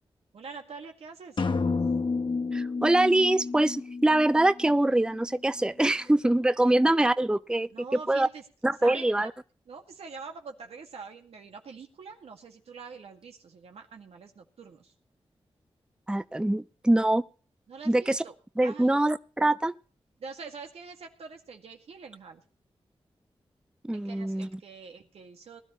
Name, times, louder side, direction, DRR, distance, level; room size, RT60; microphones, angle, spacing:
voice 1, 0.3-1.4 6.6-7.0 7.7-8.4 8.8-9.3 9.7-14.9 17.7-18.3 18.6-19.1 20.2-22.4 23.9-25.6, right 5 dB, 90° right, 2.1 m, -44 dB
sound 1, 1.4-5.2, left 4 dB, 50° left, 1.0 m, -30 dB
voice 2, 2.5-7.7 8.1-8.3 8.6-9.3 16.1-17.2 17.9-18.2 18.6-19.7 23.8-24.5, right 1 dB, 10° right, 0.5 m, -24 dB
20.0 x 12.0 x 3.1 m
cardioid pair, 55°, 10 cm